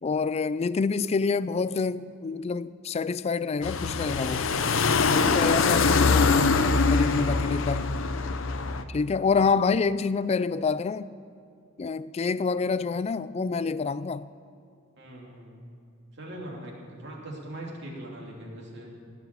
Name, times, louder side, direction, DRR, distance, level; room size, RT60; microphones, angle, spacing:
voice 1, 0.0-4.5 5.1-8.0 8.9-11.1 11.8-14.3, left 4 dB, 30° left, 0.3 m, -27 dB
sound 1, 3.6-8.8, left 4 dB, 75° left, 0.7 m, -23 dB
voice 2, 15.0-15.8 16.2-18.9, right 1 dB, 60° right, 2.8 m, -41 dB
17.0 x 6.0 x 9.0 m
head